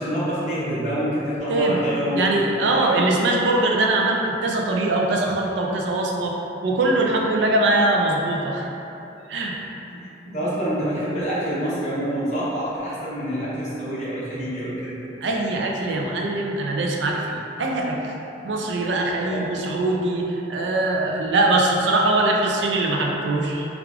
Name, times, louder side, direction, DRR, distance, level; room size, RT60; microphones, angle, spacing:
voice 1, 0.0-3.0 9.9-14.9 19.3-19.8, equal, 40° left, -10 dB, 0.9 m, -27 dB
voice 2, 2.1-6.4 6.6-8.7 9.3-9.6 15.2-18.0 18.4-23.7, right 2 dB, 75° right, -1 dB, 0.4 m, -22 dB
4.6 x 2.4 x 2.4 m, 2.9 s
head